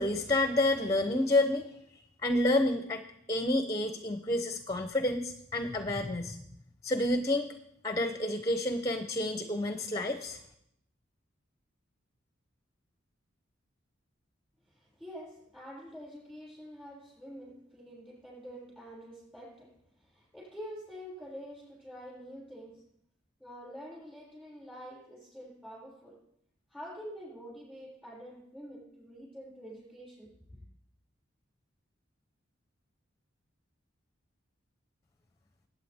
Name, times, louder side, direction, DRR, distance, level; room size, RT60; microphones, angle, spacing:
voice 1, 0.0-1.8 2.2-3.0 3.3-6.4 6.8-7.5 7.8-10.4, left 1 dB, 15° left, 8 dB, 0.7 m, -29 dB
voice 2, 14.6-22.8 23.4-26.2 26.7-30.6, equal, 5° right, -6 dB, 6.3 m, -47 dB
21.0 x 8.6 x 3.6 m, 0.75 s
head